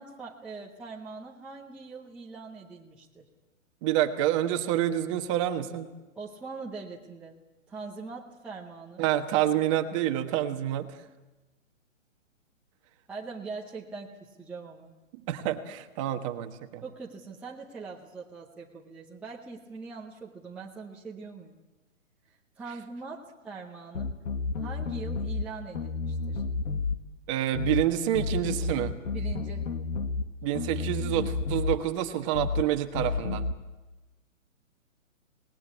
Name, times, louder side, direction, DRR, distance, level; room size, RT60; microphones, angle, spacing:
voice 1, 0.0-3.3 6.1-7.3 7.7-9.1 13.1-14.9 16.8-21.6 22.3-24.2 24.6-26.4 29.1-29.7, right 4 dB, 5° right, -5 dB, 0.8 m, -42 dB
voice 2, 3.8-5.9 9.0-10.9 15.1-16.8 27.3-28.9 30.4-33.5, right 12 dB, 25° right, 7 dB, 1.4 m, -28 dB
sound 1, 23.9-25.5 25.7-27.0 27.5-27.9 28.1-30.3 30.5-31.8 32.3-32.7 32.9-33.5, left 4 dB, 70° left, 1.9 m, -31 dB
26.0 x 19.5 x 8.4 m, 1.1 s
hypercardioid pair, 155°, 40 cm